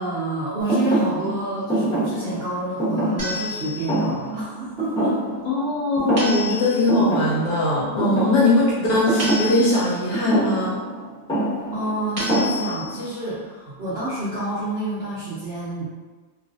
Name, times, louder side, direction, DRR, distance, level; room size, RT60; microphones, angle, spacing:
voice 1, 0.0-5.2 8.5-8.8 11.7-15.8, right 1 dB, 65° right, -11 dB, 0.6 m, -28 dB
Thump thud, 0.7-5.7 6.0-6.6 6.9-13.0, right 1 dB, 5° left, 0.5 m, -25 dB
sound 1, 3.2-4.1 6.2-7.0 9.2-10.1 12.2-13.1, left 2 dB, 35° right, 1.2 m, -31 dB
voice 2, 5.5-8.6 8.9-10.8, left 2 dB, 75° left, -6 dB, 0.9 m, -20 dB
3.0 x 2.3 x 2.6 m, 1.3 s
omnidirectional pair, 2.0 m